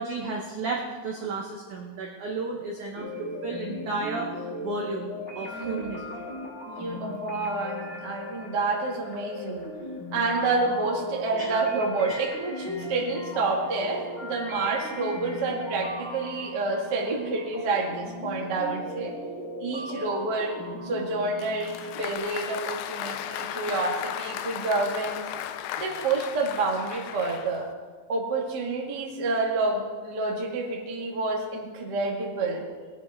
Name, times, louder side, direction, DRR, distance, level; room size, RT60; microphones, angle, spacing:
voice 1, 0.0-6.3 11.4-11.5 12.1-12.2, right 3 dB, 75° right, -1 dB, 1.8 m, -33 dB
sound 1, 2.9-22.1, left 2 dB, 25° left, 1.4 m, -38 dB
voice 2, 5.4-6.0 6.7-9.7 10.1-19.1 19.6-20.5 20.8-25.2 25.8-27.7 28.1-32.6, right 3 dB, 55° right, -2 dB, 1.1 m, -28 dB
Applause, 21.4-27.7, left 11 dB, 80° left, 2.4 m, -36 dB
20.0 x 10.0 x 3.6 m, 1.5 s
omnidirectional pair, 5.2 m